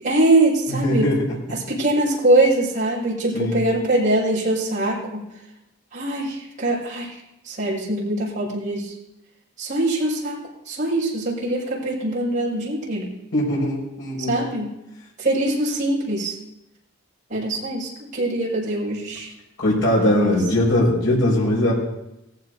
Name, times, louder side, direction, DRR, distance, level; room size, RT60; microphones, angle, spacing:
voice 1, 0.0-1.1 1.7-5.3 5.9-7.2 7.4-8.9 9.6-10.4 10.7-13.1 14.3-14.7 15.2-16.4 17.3-19.3 20.0-20.4, right 1 dB, 40° right, -5 dB, 5.5 m, -22 dB
voice 2, 0.7-1.6 3.3-3.6 13.3-14.4 19.6-21.7, left 1 dB, 85° left, -6 dB, 5.5 m, -20 dB
19.0 x 15.0 x 2.7 m, 0.87 s
head